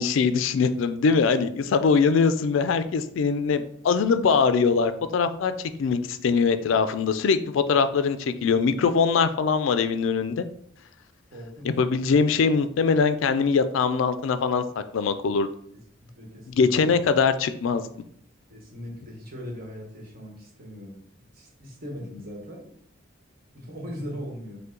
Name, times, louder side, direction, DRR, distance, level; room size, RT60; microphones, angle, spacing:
voice 1, 0.0-5.5 5.8-10.5 11.8-15.5 16.5-17.9, left 5 dB, 70° left, 11 dB, 0.3 m, -22 dB
voice 2, 11.3-11.7 15.7-15.8 16.1-17.1 18.5-21.0 21.3-22.7 23.5-24.6, equal, 45° right, -1 dB, 1.2 m, -39 dB
5.4 x 2.1 x 3.7 m, 0.66 s
head